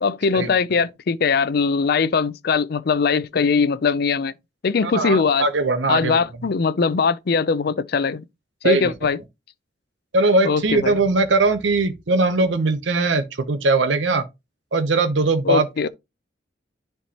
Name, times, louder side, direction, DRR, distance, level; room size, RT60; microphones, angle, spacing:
voice 1, 0.0-4.3 4.6-5.4 5.9-8.2 8.6-9.2 10.4-11.0 15.4-15.9, left 5 dB, 55° left, 0.4 m, -21 dB
voice 2, 4.8-6.2 8.6-8.9 10.1-14.2 14.7-15.9, right 3 dB, 75° right, 0.8 m, -20 dB
10.0 x 4.5 x 2.9 m
head